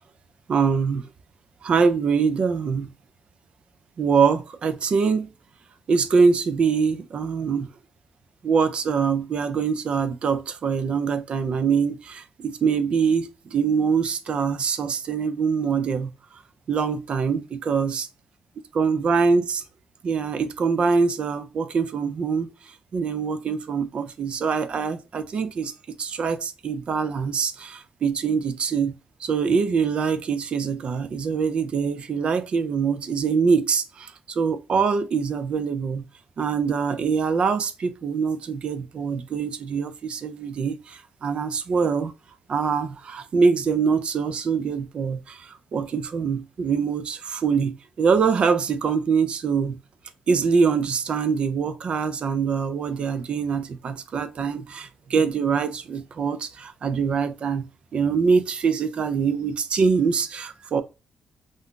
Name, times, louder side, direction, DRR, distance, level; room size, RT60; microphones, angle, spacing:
voice 1, 0.5-1.1 1.6-2.9 4.0-5.3 5.9-7.7 8.4-16.1 16.7-18.0 18.7-19.6 20.0-22.5 22.9-25.7 26.0-28.9 29.2-36.0 36.4-42.1 42.5-49.8 50.3-57.7 57.9-60.8, right 5 dB, 45° right, 0.4 m, -24 dB
2.5 x 2.2 x 3.6 m
wide cardioid pair, 160°, 3 cm